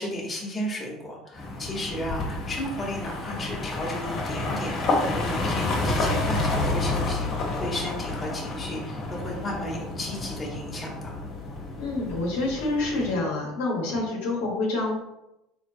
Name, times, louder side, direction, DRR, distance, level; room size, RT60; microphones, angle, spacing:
voice 1, 0.0-4.8 5.1-7.3 7.6-11.1, left 1 dB, 25° left, -3 dB, 1.4 m, -34 dB
sound 1, 1.3-13.2, left 2 dB, 50° left, 1.3 m, -29 dB
voice 2, 11.8-14.9, left 2 dB, 80° left, -2 dB, 1.0 m, -27 dB
3.8 x 3.2 x 2.8 m, 0.89 s
hypercardioid pair, 75°, 0 cm